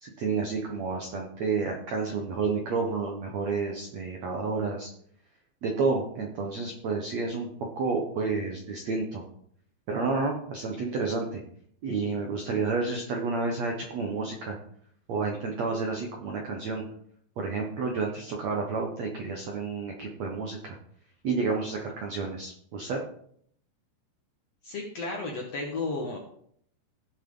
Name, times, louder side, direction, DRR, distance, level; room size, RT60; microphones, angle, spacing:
voice 1, 0.0-4.9 5.6-7.5 7.8-9.2 9.9-11.4 11.8-14.6 15.1-16.9 17.4-20.8 21.2-23.0, right 4 dB, 85° right, 1 dB, 1.5 m, -30 dB
voice 2, 24.6-26.2, left 3 dB, 70° left, 0 dB, 1.5 m, -33 dB
17.0 x 6.4 x 3.9 m, 0.65 s
omnidirectional pair, 5.2 m